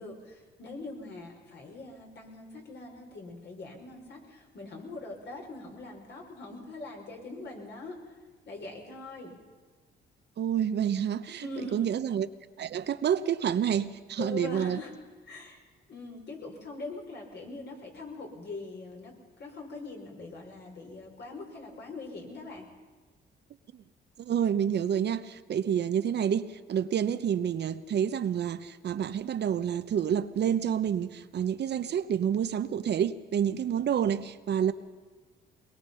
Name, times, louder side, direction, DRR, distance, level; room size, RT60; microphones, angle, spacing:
voice 1, 0.0-8.1 8.4-9.4 11.4-11.9 14.2-15.0 15.3-15.6 15.9-22.7, left 3 dB, 60° left, 5.8 m, -42 dB
voice 2, 10.4-12.3 12.6-14.8 23.7-23.8 24.2-34.7, right 9 dB, 60° right, 0.9 m, -28 dB
22.0 x 21.5 x 5.7 m
cardioid pair, 90°, 20 cm